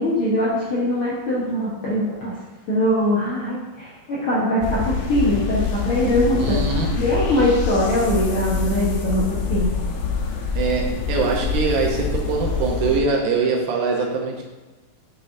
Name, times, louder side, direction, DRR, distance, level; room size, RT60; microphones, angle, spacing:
voice 1, 0.0-2.4 2.7-6.6 6.9-9.7, left 1 dB, 60° left, -7 dB, 1.5 m, -22 dB
sound 1, 4.6-13.0, left 4 dB, 80° left, 2.2 m, -25 dB
voice 2, 6.4-6.9 10.6-14.4, right 4 dB, 75° right, -1 dB, 2.1 m, -23 dB
7.7 x 5.6 x 2.6 m, 1.2 s
omnidirectional pair, 3.9 m